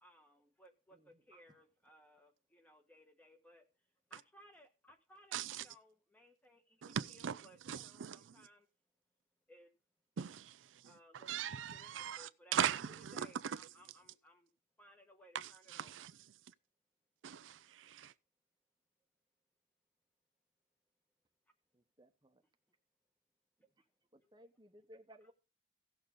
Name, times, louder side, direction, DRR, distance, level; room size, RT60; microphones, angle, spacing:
voice 1, 0.0-3.7 4.1-8.7 9.5-9.7 10.8-14.5 14.8-15.9 23.6-23.7 24.2-24.3 25.2-25.3, equal, 10° left, 1.3 m, -63 dB
voice 2, 0.9-1.6 21.7-22.4 24.1-25.3, equal, 25° right, 1.0 m, -61 dB
voice 3, 5.3-5.6 6.8-7.4 7.7-8.2 10.2-10.8 11.1-13.6 15.3-16.1 17.2-18.1, right 8 dB, 90° right, 0.4 m, -40 dB
16.0 x 6.7 x 3.7 m
head